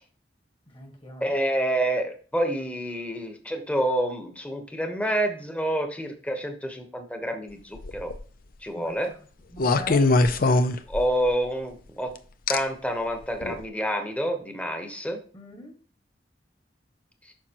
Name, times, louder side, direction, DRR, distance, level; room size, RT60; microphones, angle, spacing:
voice 1, 0.7-1.3 8.7-9.2 9.5-10.1 15.3-15.8, left 1 dB, 30° left, 3 dB, 1.6 m, -42 dB
voice 2, 1.2-8.1 8.6-9.1 10.9-12.1 12.5-15.2, right 1 dB, 10° left, 5 dB, 1.1 m, -28 dB
sound 1, 7.8-8.2 9.6-11.3 12.5-12.6 13.4-13.6, left 2 dB, 55° left, 0.6 m, -22 dB
9.1 x 5.9 x 3.0 m, 0.42 s
head